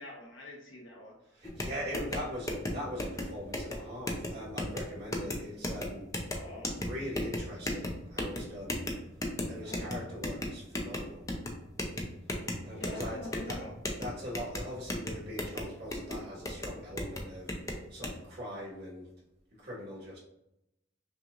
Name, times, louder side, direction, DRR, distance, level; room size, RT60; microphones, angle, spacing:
voice 1, 0.0-1.1 6.3-6.7 9.6-9.9 12.7-13.7, left 1 dB, 85° left, -1 dB, 1.1 m, -44 dB
voice 2, 1.3-6.1 6.7-8.8 9.5-11.2 12.6-13.2 13.5-13.6 14.0-17.5 17.9-19.1 19.6-20.2, equal, 60° right, -5 dB, 1.5 m, -41 dB
sound 1, 1.4-18.1, left 1 dB, 20° left, 0.5 m, -37 dB
5.6 x 2.5 x 2.5 m, 0.86 s
head